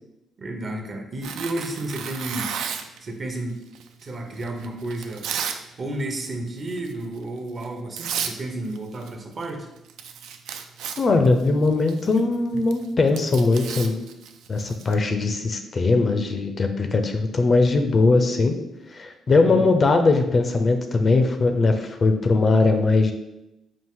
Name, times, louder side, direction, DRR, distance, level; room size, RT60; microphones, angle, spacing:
voice 1, 0.4-2.5 3.0-3.6 4.0-5.3 5.8-9.7 19.3-19.7, right 1 dB, 45° right, 3 dB, 0.7 m, -31 dB
Tearing, 1.2-3.0 3.7-5.6 5.9-6.3 6.7-6.9 7.6-7.7 8.0-8.4 8.6-9.5 9.8-14.9, right 7 dB, 85° right, 0.3 m, -33 dB
voice 2, 11.0-14.0 14.5-18.6 18.9-23.1, left 3 dB, 40° left, 6 dB, 0.4 m, -20 dB
4.4 x 2.4 x 3.7 m, 0.90 s
cardioid pair, 90°, 0 cm